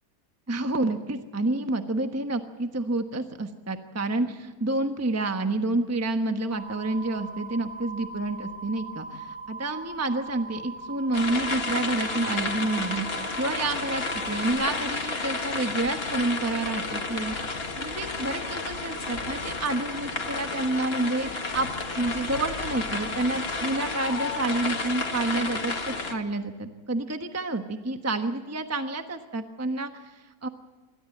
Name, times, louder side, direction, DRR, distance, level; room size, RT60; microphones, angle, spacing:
voice 1, 0.5-21.7 22.0-30.5, right 2 dB, 10° right, 6 dB, 1.0 m, -29 dB
sound 1, 6.5-14.5, right 3 dB, 55° right, 4.0 m, -40 dB
sound 2, 11.1-26.1, left 3 dB, 35° left, 1.9 m, -31 dB
26.5 x 13.5 x 8.6 m, 1.4 s
omnidirectional pair, 1.8 m